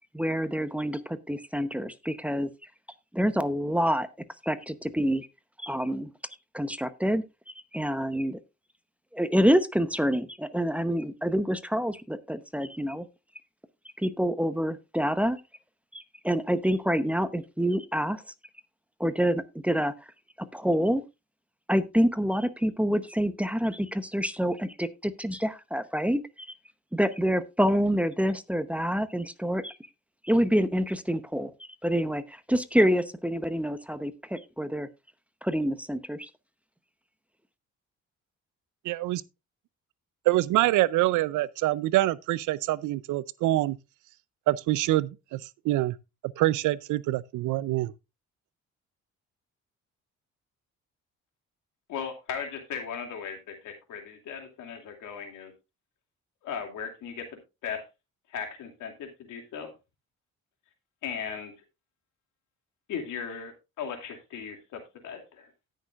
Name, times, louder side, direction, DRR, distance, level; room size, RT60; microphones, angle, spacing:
voice 1, 0.1-2.5 3.1-4.1 4.4-5.3 5.6-6.1 6.5-7.2 7.7-8.4 9.1-13.1 14.0-15.4 15.9-18.2 19.0-19.9 20.5-21.0 21.7-26.5 26.9-29.7 30.2-31.5 31.8-34.9 35.4-36.3, equal, 5° right, 0.8 m, -27 dB
voice 2, 38.9-39.2 40.3-43.8 44.5-46.0 46.4-47.9, right 16 dB, 90° right, 0.6 m, -25 dB
voice 3, 51.9-55.5 56.4-57.8 58.3-59.7 61.0-61.5 62.9-65.5, left 7 dB, 85° left, 2.6 m, -37 dB
18.0 x 6.5 x 2.4 m
cardioid pair, 90°, 30 cm